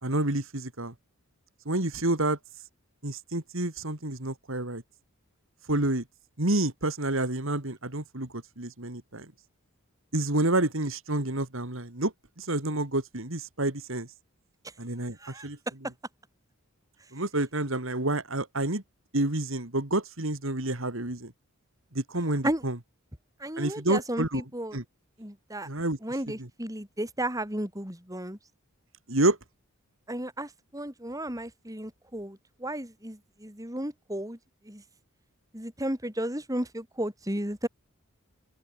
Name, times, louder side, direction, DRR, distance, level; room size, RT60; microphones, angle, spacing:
voice 1, 0.0-0.9 1.7-2.4 3.0-4.8 5.7-6.0 6.4-9.3 10.1-14.1 14.8-15.2 15.4-15.6 17.1-18.8 19.1-21.3 21.9-22.8 23.6-24.4 24.7-24.8 25.7-26.0 26.4-26.5 29.1-29.4, right 2 dB, 60° right, 2.6 m, -29 dB
voice 2, 23.4-24.8 25.2-25.7 26.0-28.4 30.1-34.4 34.7-34.8 35.5-37.7, right 1 dB, 15° right, 3.8 m, -34 dB
open air
head